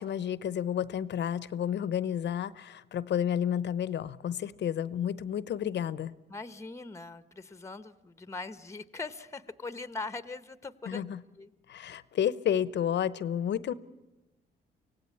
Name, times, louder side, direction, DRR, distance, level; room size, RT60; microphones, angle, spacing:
voice 1, 0.0-6.1 10.9-11.2 11.7-13.7, left 9 dB, 60° left, 18 dB, 0.9 m, -31 dB
voice 2, 6.3-11.0 11.4-11.5, left 3 dB, 15° left, 14 dB, 1.0 m, -41 dB
25.0 x 17.5 x 8.5 m, 1.0 s
cardioid pair, 90°, 20 cm